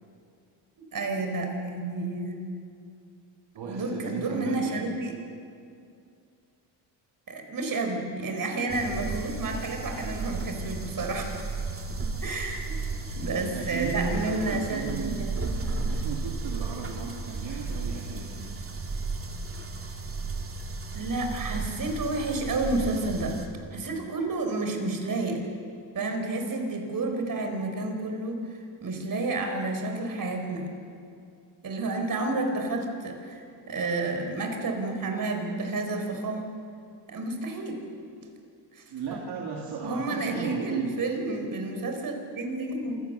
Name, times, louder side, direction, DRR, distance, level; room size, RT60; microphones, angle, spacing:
voice 1, 0.9-2.4 3.6-5.2 7.3-11.3 12.2-12.8 13.1-15.3 20.9-23.4 23.7-25.5 25.9-28.5 28.8-30.7 31.6-36.5 37.1-37.8 38.2-38.3 38.7-38.8 39.8-43.0, right 2 dB, 45° right, 4 dB, 4.4 m, -30 dB
voice 2, 3.6-4.9 13.5-15.5 15.9-18.6 38.9-41.0, right 5 dB, 65° right, -1 dB, 2.5 m, -35 dB
sound 1, 8.7-23.5, right 3 dB, 30° right, 2.8 m, -34 dB
26.5 x 16.0 x 6.9 m, 2.5 s
cardioid pair, 90°, 44 cm